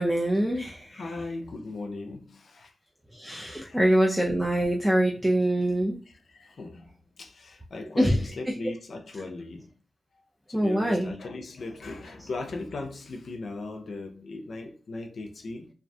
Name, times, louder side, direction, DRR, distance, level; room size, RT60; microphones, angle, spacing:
voice 1, 0.0-1.1 3.1-6.0 7.8-8.5 10.5-11.1, right 1 dB, 5° right, 0.4 m, -25 dB
voice 2, 0.9-2.7 3.7-3.8 6.3-6.9 7.2-9.7 10.5-15.7, left 3 dB, 65° left, 0.4 m, -38 dB
2.3 x 2.2 x 2.6 m
cardioid pair, 75°, 0 cm